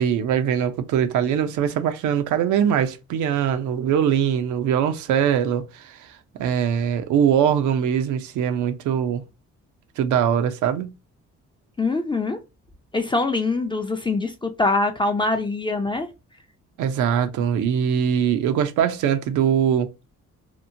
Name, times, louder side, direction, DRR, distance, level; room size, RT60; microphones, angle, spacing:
voice 1, 0.0-6.0 6.4-9.2 10.0-10.9 16.8-19.9, right 8 dB, 80° right, 0.5 m, -22 dB
voice 2, 11.8-12.4 12.9-16.1, left 3 dB, 15° left, 0.4 m, -23 dB
2.9 x 2.1 x 2.6 m
cardioid pair, 90°, 30 cm